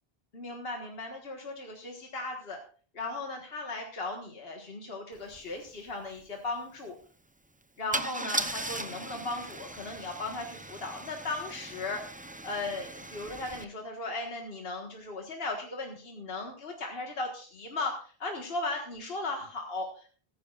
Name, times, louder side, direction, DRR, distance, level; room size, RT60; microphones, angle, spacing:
voice 1, 0.3-2.6 2.9-7.0 7.8-12.0 12.4-17.9 18.2-20.1, left 2 dB, 65° left, 1 dB, 1.8 m, -37 dB
Car / Engine starting / Idling, 5.3-5.4 5.7-5.9 7.9-13.6, right 2 dB, 10° right, 0.5 m, -38 dB
15.5 x 14.0 x 2.5 m, 0.41 s
omnidirectional pair, 1.1 m